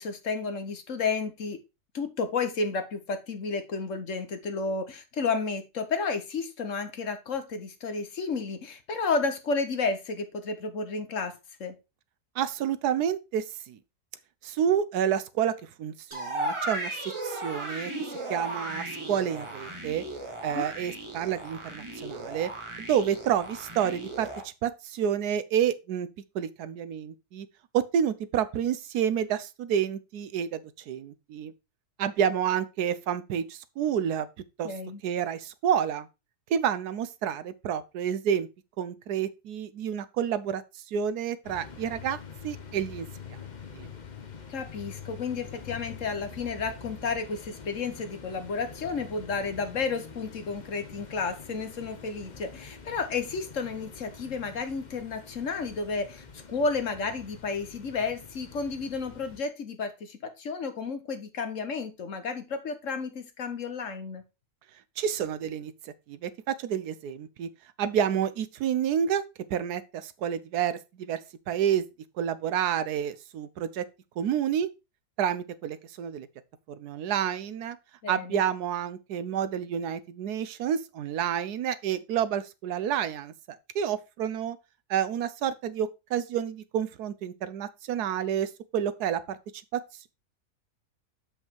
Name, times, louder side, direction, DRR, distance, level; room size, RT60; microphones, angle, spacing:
voice 1, 0.0-1.6 1.9-11.3 11.6-11.7 20.5-20.7 34.6-35.0 44.5-64.2 78.0-78.4, left 4 dB, 55° left, 1.4 m, -32 dB
voice 2, 12.4-13.8 14.4-17.9 18.3-20.0 20.4-22.5 22.9-26.1 26.3-27.5 27.7-31.5 32.0-34.3 34.6-34.7 35.0-36.1 36.5-38.5 38.8-40.6 40.9-42.2 42.4-43.1 43.7-43.9 65.0-65.7 66.1-67.5 67.8-69.2 69.5-71.2 71.5-71.8 72.2-73.8 74.2-74.7 75.2-76.3 76.7-77.8 78.1-83.3 83.7-84.6 84.9-89.4 89.7-89.8, right 9 dB, 80° right, 1.3 m, -29 dB
sound 1, 16.1-24.4, right 1 dB, 20° right, 1.6 m, -36 dB
sound 2, 41.4-59.4, left 6 dB, 35° left, 0.8 m, -45 dB
7.2 x 5.3 x 4.5 m
omnidirectional pair, 1.6 m